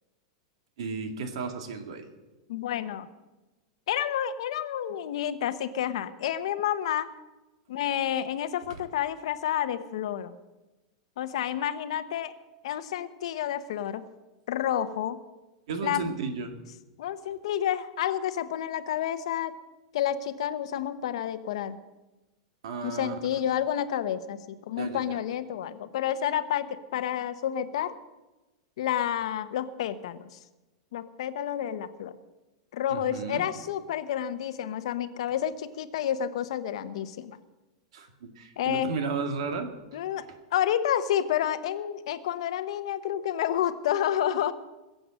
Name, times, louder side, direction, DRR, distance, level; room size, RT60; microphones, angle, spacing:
voice 1, 0.8-2.1 8.7-8.8 15.7-16.6 22.6-23.1 24.8-25.2 32.9-33.4 37.9-40.4, right 4 dB, 70° right, 6 dB, 2.2 m, -34 dB
voice 2, 2.5-3.1 3.9-7.1 7.7-10.4 11.2-12.3 12.6-14.0 14.5-15.2 15.8-16.1 17.0-19.5 19.9-21.8 22.8-28.0 28.8-30.4 30.9-32.2 32.7-37.4 38.6-38.9 39.9-40.2 40.5-44.5, left 10 dB, 65° left, 12 dB, 1.0 m, -29 dB
21.0 x 7.8 x 7.7 m, 1.1 s
supercardioid pair, 165°, 3 cm